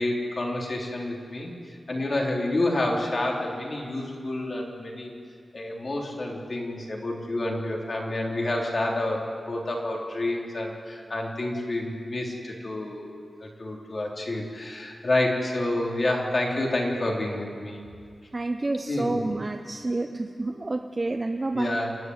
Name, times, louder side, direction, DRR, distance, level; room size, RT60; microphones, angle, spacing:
voice 1, 0.0-1.5 1.9-5.1 5.5-9.2 9.5-17.8 18.9-19.2 21.5-22.0, left 1 dB, 40° left, -1 dB, 3.5 m, -29 dB
voice 2, 18.3-21.8, right 2 dB, 25° right, 5 dB, 0.8 m, -29 dB
28.5 x 11.0 x 9.5 m, 2.2 s
wide cardioid pair, 130°, 0 cm